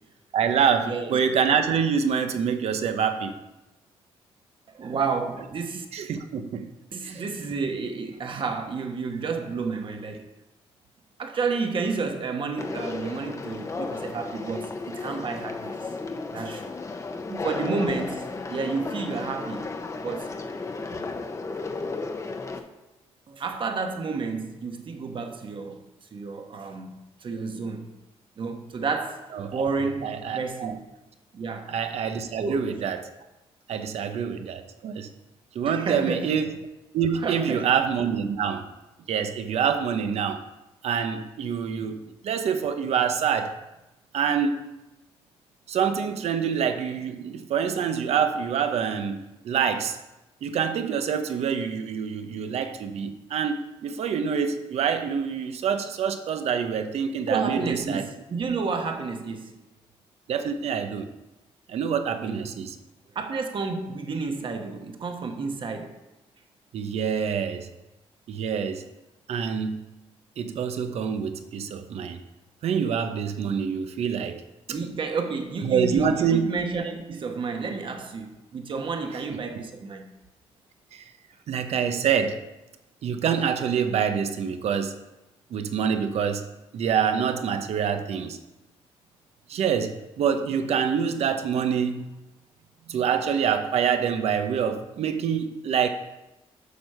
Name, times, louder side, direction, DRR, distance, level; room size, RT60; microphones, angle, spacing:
voice 1, 0.3-3.3 5.9-6.7 7.0-7.2 17.3-17.4 29.3-29.6 30.0-30.8 31.7-33.1 33.7-35.1 35.5-36.6 36.9-38.7 39.1-40.4 40.8-43.6 44.1-44.6 45.7-50.0 50.4-58.0 60.3-61.1 61.7-62.8 66.7-67.7 68.3-68.8 69.3-69.9 70.4-72.2 72.6-74.4 75.6-76.5 80.9-81.0 81.5-82.4 83.0-85.0 85.5-86.5 86.7-88.4 89.5-92.1 92.9-95.9, right 7 dB, 70° right, 0.9 m, -26 dB
voice 2, 0.8-1.2 4.7-5.9 6.9-10.3 11.2-15.9 16.3-16.7 17.4-19.7 20.0-20.5 23.3-25.8 26.1-27.9 28.4-29.2 29.5-30.8 31.3-31.7 32.4-32.7 35.6-36.3 37.2-37.7 57.3-59.6 62.3-62.5 63.1-65.9 74.7-80.1, right 4 dB, 50° right, 1.2 m, -31 dB
Conversation, 12.6-22.6, left 3 dB, 30° left, 0.9 m, -34 dB
8.3 x 6.4 x 5.6 m
cardioid pair, 100°, 11 cm